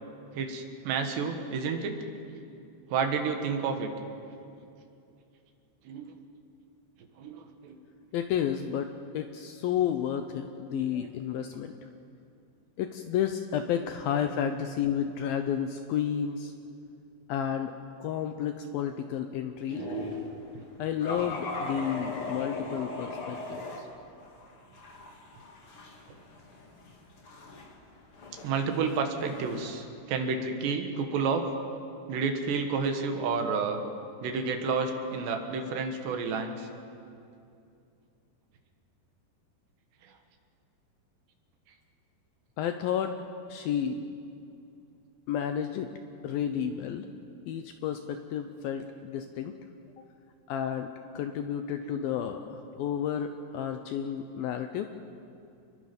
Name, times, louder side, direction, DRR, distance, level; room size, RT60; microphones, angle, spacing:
voice 1, 0.4-2.0 2.9-3.9 5.9-6.1 7.2-7.8 10.7-11.1 19.7-20.1 22.8-22.9 28.4-31.4 32.1-33.8 34.2-36.7 40.0-40.1 51.9-52.0, right 5 dB, 80° right, 5 dB, 3.7 m, -30 dB
voice 2, 8.1-11.9 12.8-16.5 17.3-19.9 20.8-23.9 42.6-43.1 43.5-44.0 45.3-45.9 46.2-47.1 47.5-49.5 50.5-54.9, left 9 dB, 80° left, 7 dB, 2.2 m, -31 dB
sound 1, 19.7-20.3 21.0-23.8 24.2-29.7, left 2 dB, 40° left, 2.4 m, -39 dB
29.0 x 21.5 x 5.4 m, 2.6 s
omnidirectional pair, 5.0 m